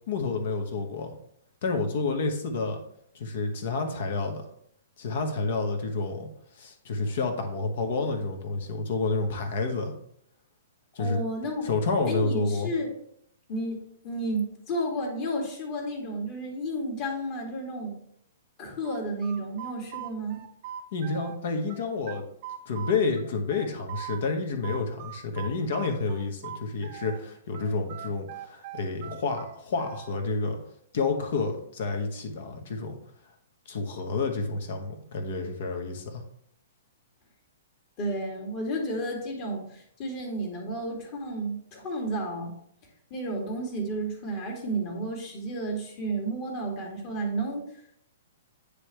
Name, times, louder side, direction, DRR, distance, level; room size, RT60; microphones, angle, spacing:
voice 1, 0.1-1.1 1.6-2.8 3.1-4.5 5.0-6.3 6.5-9.9 10.9-11.2 11.6-12.7 20.9-22.2 22.7-30.6 30.9-33.0 33.7-36.2, left 3 dB, 55° left, 5 dB, 1.2 m, -29 dB
voice 2, 11.0-11.7 12.1-12.9 13.5-18.0 18.6-20.4 38.0-42.5 43.1-47.6, right 1 dB, 40° left, 1 dB, 1.9 m, -32 dB
sound 1, 18.8-21.4 21.7-24.2 24.6-27.2 27.5-30.2, right 10 dB, 45° right, 0.6 m, -41 dB
9.6 x 3.3 x 3.2 m, 0.68 s
figure-of-eight pair, 115°, 0 cm